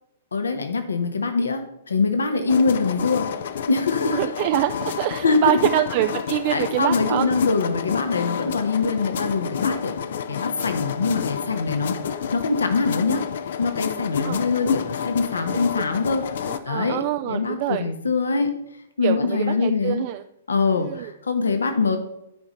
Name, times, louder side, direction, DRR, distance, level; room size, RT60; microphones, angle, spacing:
voice 1, 0.3-3.3 3.7-4.2 5.2-5.4 6.5-10.0 10.3-13.2 13.6-18.5 19.0-20.0 20.5-22.0, left 4 dB, 75° left, 7 dB, 1.2 m, -23 dB
sound 1, 2.5-16.6, left 7 dB, 55° left, 0.6 m, -30 dB
voice 2, 4.1-7.3 14.2-14.4 16.5-17.9 19.0-20.2 20.7-21.1, right 13 dB, 40° right, 9 dB, 0.4 m, -25 dB
11.0 x 5.1 x 4.1 m, 0.83 s
figure-of-eight pair, 115°, 0 cm